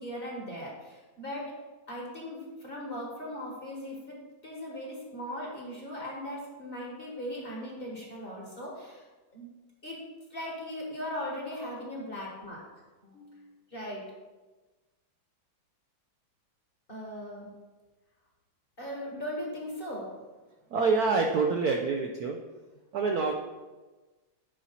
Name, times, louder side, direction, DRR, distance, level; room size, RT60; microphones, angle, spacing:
voice 1, 0.0-1.6 1.9-4.2 4.4-9.0 9.3-9.5 9.8-10.0 10.3-12.6 13.0-14.0 16.9-17.5 18.8-20.2, equal, 30° left, -3 dB, 1.5 m, -39 dB
voice 2, 20.7-22.4 22.9-23.3, right 4 dB, 70° right, 3 dB, 0.9 m, -26 dB
9.8 x 4.3 x 4.1 m, 1.2 s
omnidirectional pair, 2.1 m